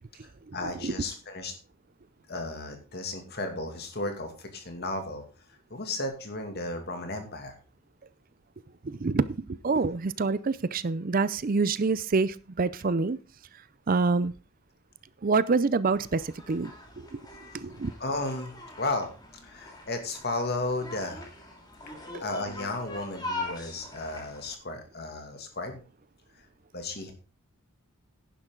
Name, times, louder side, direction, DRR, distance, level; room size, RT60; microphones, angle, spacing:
voice 1, 0.5-1.5 2.3-5.2 5.7-7.5 18.0-19.1 19.4-21.4 22.2-25.8 26.7-27.1, left 2 dB, 45° left, 2.4 m, -34 dB
voice 2, 8.8-13.2 13.9-14.3 15.2-16.7 17.1-17.2 17.5-17.9 22.1-22.2, right 4 dB, 40° right, 0.5 m, -26 dB
sound 1, 15.9-24.5, left 2 dB, 20° left, 2.7 m, -42 dB
11.0 x 10.5 x 3.8 m
head